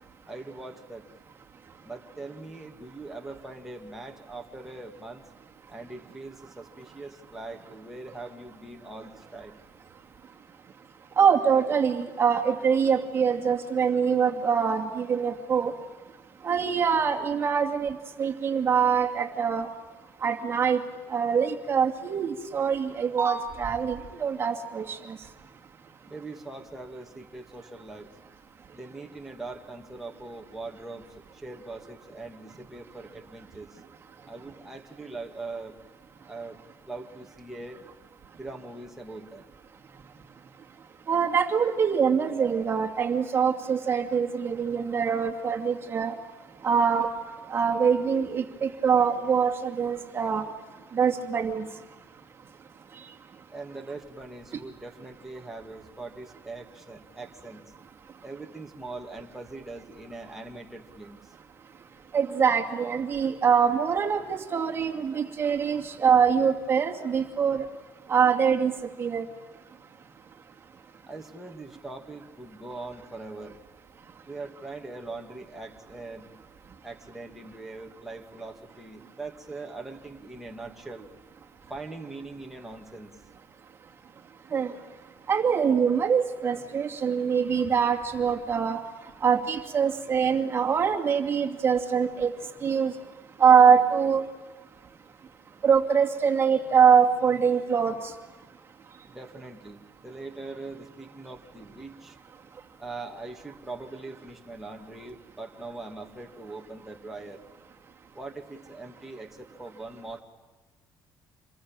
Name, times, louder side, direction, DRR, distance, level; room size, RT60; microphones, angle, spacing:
voice 1, 0.3-1.1 1.8-5.2 5.7-9.5 26.1-28.1 28.7-31.1 31.3-33.8 34.3-35.7 36.2-37.8 38.4-39.4 53.5-57.6 58.2-61.3 71.1-73.6 74.3-76.3 76.8-81.1 81.7-83.1 99.1-102.2 102.8-107.4 108.1-110.2, right 3 dB, 5° right, 1 dB, 2.5 m, -41 dB
voice 2, 11.2-15.7 16.4-19.7 20.2-20.8 21.1-25.2 41.1-46.1 46.6-47.1 47.5-50.4 50.9-51.6 62.1-67.6 68.1-68.7 69.0-69.2 84.5-84.7 85.3-88.8 89.2-92.3 92.6-92.9 93.4-94.2 95.6-97.9, right 6 dB, 35° right, 3 dB, 2.6 m, -24 dB
27.5 x 22.0 x 9.0 m, 1.3 s
cardioid pair, 125°, 7 cm